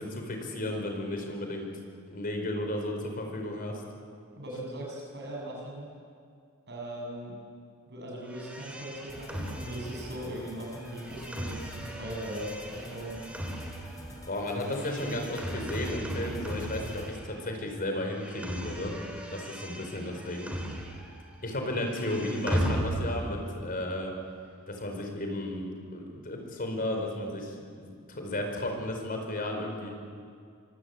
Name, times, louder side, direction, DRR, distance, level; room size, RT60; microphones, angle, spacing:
voice 1, 0.0-1.7 2.1-3.8 14.2-18.9 19.3-20.5 21.4-24.1 24.7-30.0, left 1 dB, 40° left, 3 dB, 5.0 m, -34 dB
voice 2, 4.4-5.9 6.7-7.3 7.9-13.2, right 1 dB, 50° right, -1 dB, 6.8 m, -39 dB
sound 1, 8.3-17.6 17.8-21.3 21.5-23.4, equal, 5° right, 3.7 m, -37 dB
sound 2, 9.1-17.1, left 1 dB, 15° left, 4.0 m, -48 dB
25.5 x 24.0 x 8.7 m, 2.3 s
head